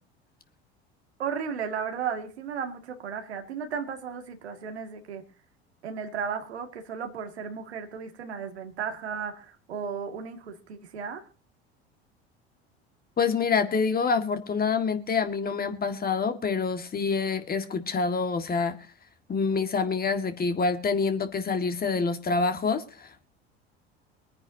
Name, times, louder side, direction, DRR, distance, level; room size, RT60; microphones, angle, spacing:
voice 1, 1.2-5.2 5.8-11.2, right 6 dB, 80° right, 5 dB, 2.2 m, -34 dB
voice 2, 13.2-18.8 19.3-23.3, left 5 dB, 30° left, 8 dB, 1.9 m, -26 dB
24.0 x 9.8 x 2.8 m, 0.35 s
hypercardioid pair, 75°, 32 cm